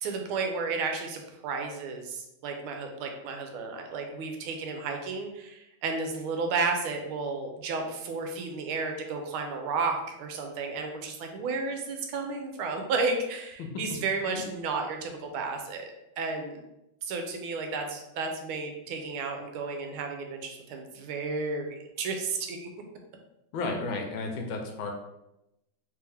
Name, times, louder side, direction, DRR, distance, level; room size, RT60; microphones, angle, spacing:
voice 1, 0.0-16.6 17.0-22.7, right 4 dB, 85° right, 4 dB, 1.5 m, -32 dB
voice 2, 23.5-24.9, left 3 dB, 75° left, 3 dB, 1.3 m, -32 dB
3.4 x 3.3 x 3.4 m, 0.89 s
omnidirectional pair, 2.3 m